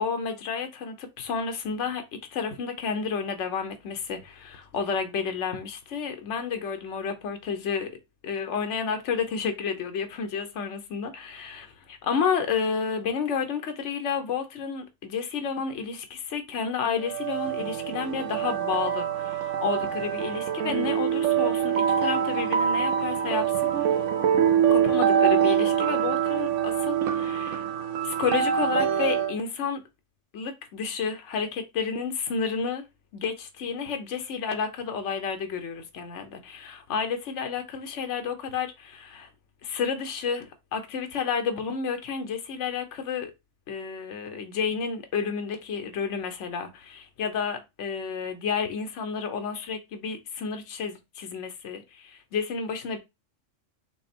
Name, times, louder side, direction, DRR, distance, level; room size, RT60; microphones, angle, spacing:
voice 1, 0.0-7.9 8.2-23.9 24.7-27.6 28.0-29.8 30.3-32.8 33.1-39.3 39.6-43.3 43.7-53.0, left 6 dB, 70° left, 1.1 m, -31 dB
sound 1, 17.0-29.4, right 8 dB, 80° right, 1.0 m, -25 dB
6.0 x 2.0 x 4.3 m
omnidirectional pair, 1.3 m